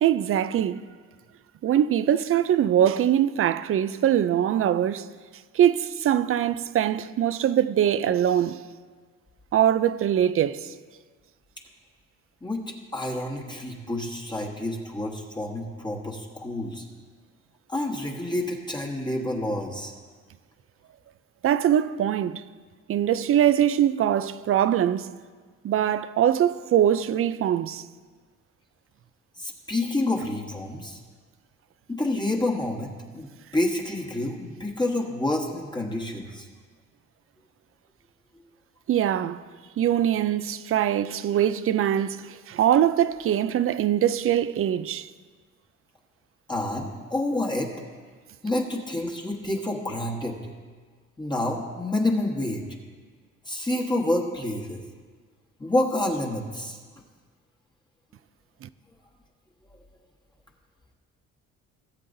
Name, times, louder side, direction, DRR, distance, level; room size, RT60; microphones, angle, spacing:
voice 1, 0.0-0.8 1.6-5.1 5.5-8.6 9.5-10.7 21.4-22.4 22.9-25.1 25.6-27.8 38.9-39.4 39.8-45.1 58.6-58.7, right 10 dB, 45° right, 0.4 m, -22 dB
voice 2, 12.9-16.8 17.7-19.9 29.4-31.0 31.9-36.5 46.5-47.7 48.4-50.4 51.2-52.6 53.4-54.8 55.6-56.8, left 1 dB, 15° left, 1.3 m, -28 dB
17.5 x 7.5 x 2.7 m
cardioid pair, 90°, 30 cm